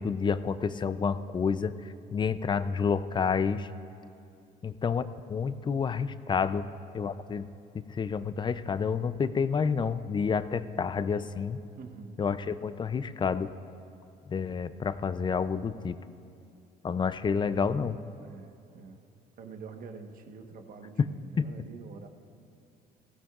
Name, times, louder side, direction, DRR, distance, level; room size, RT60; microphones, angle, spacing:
voice 1, 0.0-1.7 2.1-3.7 4.6-6.7 6.9-7.5 7.9-11.6 12.2-13.5 14.3-16.0 16.8-18.0 21.0-21.1 21.4-21.5, left 6 dB, 25° left, 13 dB, 0.5 m, -29 dB
voice 2, 11.8-12.2 18.2-19.0 19.4-22.1, right 5 dB, 55° right, 5 dB, 1.3 m, -46 dB
19.5 x 16.0 x 2.5 m, 2.7 s
cardioid pair, 110°, 17 cm